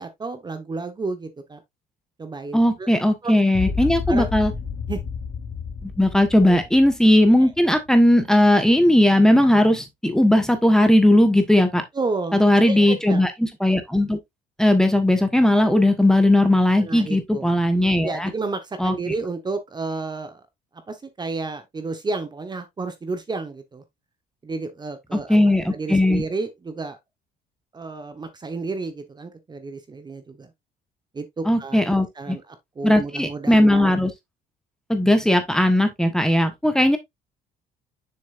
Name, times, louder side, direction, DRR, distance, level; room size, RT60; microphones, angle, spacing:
voice 1, 0.0-1.6 2.2-2.9 3.2-3.3 4.1-4.3 4.9-5.0 6.4-6.6 7.4-7.5 11.9-12.4 12.6-13.3 16.8-17.6 18.0-20.4 20.9-23.8 24.4-25.4 25.7-27.0 27.7-30.5 31.1-31.8 32.2-33.9, right 3 dB, 25° right, 1.3 m, -31 dB
voice 2, 2.5-4.5 5.8-11.8 12.3-14.2 14.6-18.3 18.8-19.1 25.1-26.2 31.5-32.4 32.8-34.1 34.9-37.0, left 1 dB, 5° left, 1.3 m, -18 dB
sound 1, 3.5-7.9, left 5 dB, 50° left, 2.7 m, -30 dB
6.8 x 6.4 x 2.6 m
cardioid pair, 110°, 17 cm